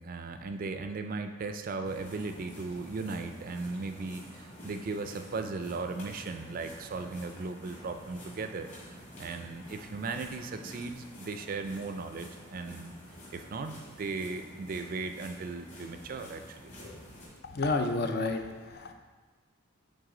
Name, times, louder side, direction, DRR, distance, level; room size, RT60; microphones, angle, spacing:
voice 1, 0.0-12.9 13.3-16.7, right 3 dB, 45° right, 7 dB, 0.4 m, -37 dB
sound 1, 1.8-17.3, equal, 35° left, 2.0 m, -49 dB
voice 2, 17.4-18.9, left 3 dB, 50° left, 5 dB, 0.5 m, -30 dB
7.9 x 4.0 x 3.8 m, 1.3 s
head